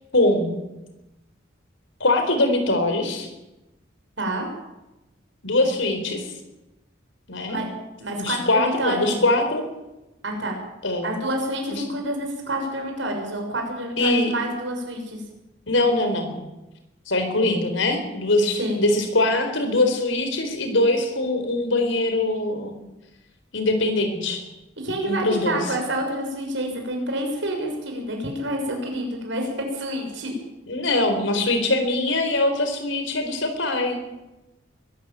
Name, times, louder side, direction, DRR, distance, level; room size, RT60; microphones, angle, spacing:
voice 1, 0.1-0.5 2.0-3.3 5.4-6.3 7.3-7.6 8.2-9.6 10.8-11.1 11.7-11.8 14.0-14.3 15.7-16.4 17.1-22.8 23.5-24.4 25.0-25.7 30.7-34.0, left 2 dB, 75° left, 7 dB, 4.2 m, -22 dB
voice 2, 8.0-9.1 10.2-10.6 11.0-15.2 18.6-18.8 24.8-30.3, right 1 dB, 70° right, 2 dB, 6.4 m, -28 dB
22.5 x 13.5 x 9.1 m, 0.99 s
head